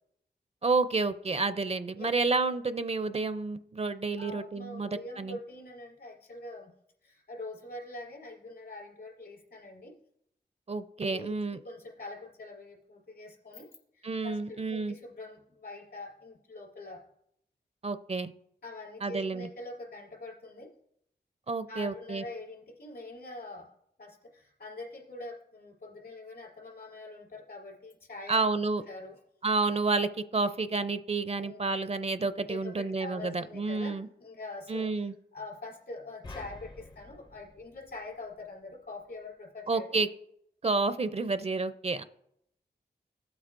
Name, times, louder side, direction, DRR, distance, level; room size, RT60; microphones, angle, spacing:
voice 1, 0.6-5.4 10.7-11.6 14.0-14.9 17.8-18.3 19.0-19.5 21.5-22.2 28.3-28.8 29.4-34.1 34.7-35.1 39.7-40.1 40.6-42.0, right 3 dB, 35° right, 11 dB, 0.4 m, -30 dB
voice 2, 3.8-6.7 7.0-9.9 11.1-17.0 18.6-20.7 21.7-23.7 24.0-28.4 28.9-29.2 31.3-31.8 32.5-40.0, left 2 dB, 70° left, -3 dB, 4.0 m, -44 dB
sound 1, 36.2-38.6, left 2 dB, 25° left, 0.5 m, -48 dB
16.0 x 8.0 x 2.5 m, 0.76 s
wide cardioid pair, 80°, 18 cm